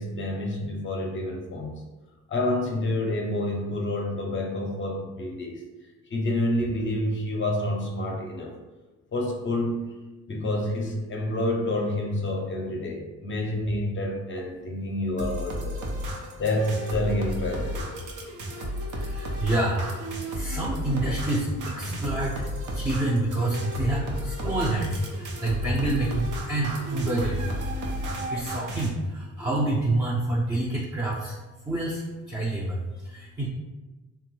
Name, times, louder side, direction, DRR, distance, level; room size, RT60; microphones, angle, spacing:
voice 1, 0.0-1.7 2.3-5.6 6.1-8.5 9.1-9.9 10.3-15.8 16.4-17.9, left 1 dB, 40° left, 0 dB, 0.6 m, -28 dB
sound 1, 15.2-28.9, equal, 75° right, 0.7 m, -33 dB
voice 2, 18.9-20.0 20.3-27.5 28.3-31.4 31.6-33.5, right 2 dB, 15° right, -4 dB, 0.5 m, -28 dB
3.0 x 2.3 x 3.0 m, 1.2 s
cardioid pair, 90°, 30 cm